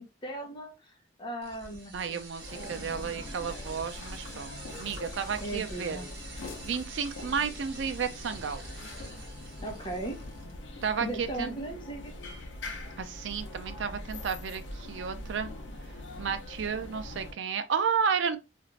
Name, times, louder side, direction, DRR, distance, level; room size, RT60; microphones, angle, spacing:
voice 1, 0.0-3.2 5.4-6.1 9.6-10.2 11.0-12.1, right 1 dB, 25° left, 0.8 m, -38 dB
sound 1, 1.4-10.5, right 2 dB, 60° right, 1.0 m, -45 dB
voice 2, 1.9-6.0 6.6-8.6 10.8-11.5 13.0-15.5 16.2-18.4, right 6 dB, 85° right, 0.4 m, -32 dB
sound 2, 2.4-17.3, left 2 dB, 85° left, 0.6 m, -43 dB
2.5 x 2.4 x 3.1 m
head